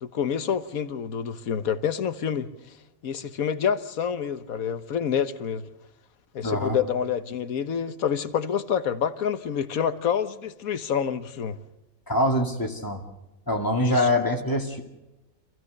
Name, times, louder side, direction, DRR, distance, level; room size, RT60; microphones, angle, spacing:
voice 1, 0.0-2.5 3.0-5.7 6.3-11.6 13.7-14.1, left 8 dB, 80° left, 1.5 m, -27 dB
voice 2, 6.4-6.8 12.1-13.0 13.5-14.8, left 1 dB, 15° left, 2.4 m, -24 dB
27.0 x 16.0 x 6.6 m
omnidirectional pair, 1.5 m